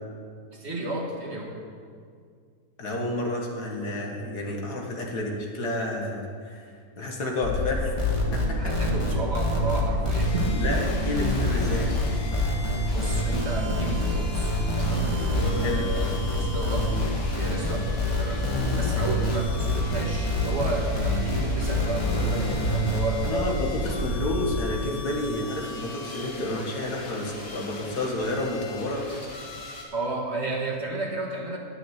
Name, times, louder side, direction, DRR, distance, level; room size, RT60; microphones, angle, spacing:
voice 1, 0.5-1.5 8.6-10.7 12.9-16.9 17.2-17.9 18.2-18.5 18.7-23.6 29.9-31.6, right 2 dB, 45° right, 0 dB, 1.6 m, -32 dB
voice 2, 2.8-6.7 7.0-7.9 8.3-8.7 10.6-11.9 15.6-15.8 23.2-29.1, left 1 dB, 70° left, 0 dB, 2.2 m, -30 dB
sound 1, 7.4-24.6, left 1 dB, 35° left, 1.1 m, -30 dB
sound 2, 8.0-23.3, left 2 dB, 20° left, 1.5 m, -27 dB
sound 3, 10.1-29.8, left 2 dB, 85° left, 2.5 m, -41 dB
10.5 x 7.1 x 9.2 m, 2.1 s
omnidirectional pair, 1.8 m